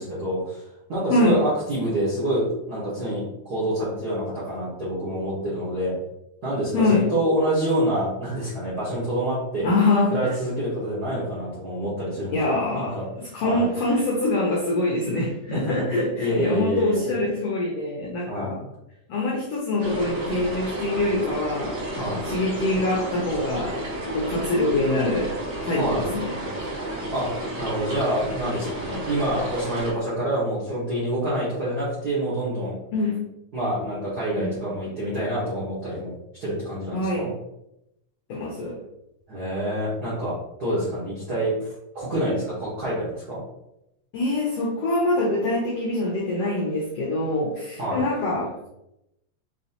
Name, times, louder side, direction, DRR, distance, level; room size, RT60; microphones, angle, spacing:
voice 1, 0.0-5.9 6.4-9.7 10.1-13.1 13.4-13.7 15.5-15.8 16.2-17.1 18.3-18.6 22.0-22.2 25.7-26.1 27.1-32.7 33.5-36.1 36.4-37.3 39.3-43.4 47.8-48.0, right 1 dB, 80° right, -8 dB, 0.8 m, -27 dB
voice 2, 1.1-1.4 6.7-7.1 9.6-10.3 12.3-18.6 19.1-21.8 22.2-25.3 25.6-26.4 32.9-33.2 34.4-34.5 36.9-37.3 38.3-38.8 44.1-48.7, left 2 dB, 85° left, -3 dB, 1.3 m, -24 dB
sound 1, 19.8-29.9, right 1 dB, 50° right, 1.2 m, -32 dB
5.4 x 3.0 x 2.8 m, 0.86 s
omnidirectional pair, 3.8 m